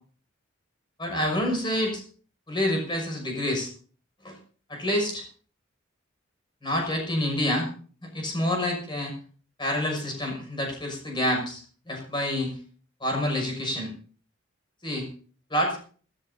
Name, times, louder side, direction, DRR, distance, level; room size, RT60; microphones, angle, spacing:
voice 1, 1.0-2.0 2.5-3.7 4.2-4.4 4.7-5.2 6.6-7.7 8.0-9.1 9.6-12.6 13.0-13.9 14.8-15.1 15.5-15.8, left 1 dB, 25° left, 1 dB, 6.2 m, -27 dB
25.0 x 13.5 x 2.8 m, 0.43 s
head